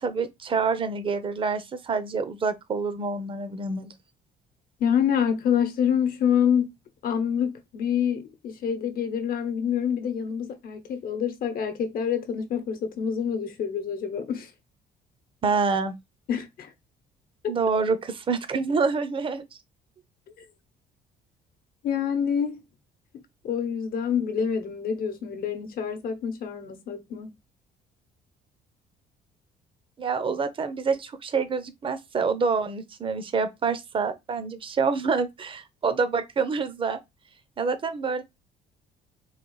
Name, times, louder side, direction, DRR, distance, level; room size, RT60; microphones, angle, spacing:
voice 1, 0.0-3.9 15.4-15.9 17.5-19.4 30.0-37.0 37.6-38.2, right 5 dB, 30° right, 0.7 m, -27 dB
voice 2, 4.8-6.7 7.0-14.5 16.3-16.7 21.8-22.6 23.1-27.3, left 8 dB, 60° left, 1.0 m, -27 dB
4.0 x 2.5 x 4.7 m
cardioid pair, 110°, 17 cm